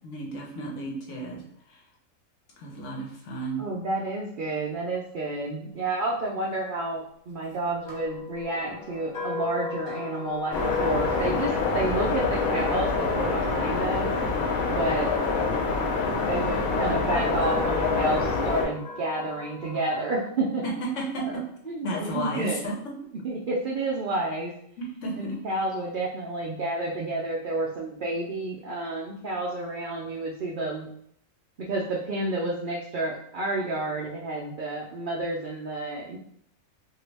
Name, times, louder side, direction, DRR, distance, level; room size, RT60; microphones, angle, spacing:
voice 1, 0.0-1.8 2.6-3.6 20.6-21.4 21.8-22.7 24.8-25.2, right 1 dB, 65° left, -1 dB, 1.1 m, -33 dB
voice 2, 3.6-14.1 14.7-15.1 16.2-20.6 21.3-21.4 21.7-22.7 23.2-24.5 25.2-30.9 31.6-36.2, right 2 dB, 75° right, -3 dB, 0.4 m, -30 dB
sound 1, 7.8-16.0 16.7-20.2, left 5 dB, 45° left, 0.7 m, -37 dB
sound 2, 10.5-18.6, left 4 dB, 80° left, 1.2 m, -26 dB
3.0 x 2.7 x 3.3 m, 0.70 s
omnidirectional pair, 1.5 m